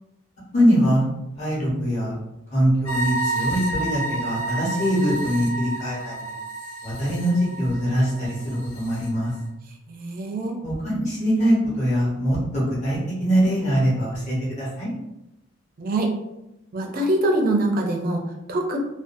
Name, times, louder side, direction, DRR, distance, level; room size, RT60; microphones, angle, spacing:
voice 1, 0.5-1.1 1.4-2.2 2.5-6.3 6.8-9.3 10.6-14.9, equal, 35° left, -7 dB, 0.9 m, -22 dB
sound 1, 2.8-9.1, right 3 dB, 80° left, 0.8 m, -31 dB
voice 2, 9.9-10.6 15.8-16.1 16.7-18.8, right 1 dB, 40° right, 1 dB, 0.4 m, -24 dB
2.4 x 2.2 x 2.5 m, 0.92 s
head